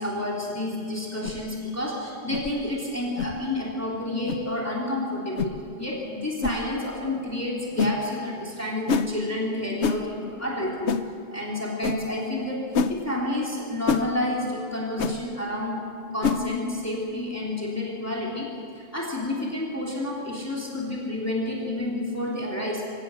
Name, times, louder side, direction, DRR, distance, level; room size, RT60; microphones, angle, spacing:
voice 1, 0.0-11.0 11.3-15.8 16.1-18.5 18.7-22.8, left 1 dB, 15° left, -3 dB, 3.0 m, -30 dB
sound 1, 1.2-1.4 2.3-2.5 3.2-3.3 4.3-4.4 5.4-5.5 6.4-6.6 7.8-8.0 8.9-9.1 9.8-10.0 10.9-11.0 11.8-12.0 12.7-12.9 13.9-14.1 15.0-15.2 16.2-16.4, left 5 dB, 75° left, 1.1 m, -25 dB
23.5 x 18.0 x 6.3 m, 2.7 s
omnidirectional pair, 1.2 m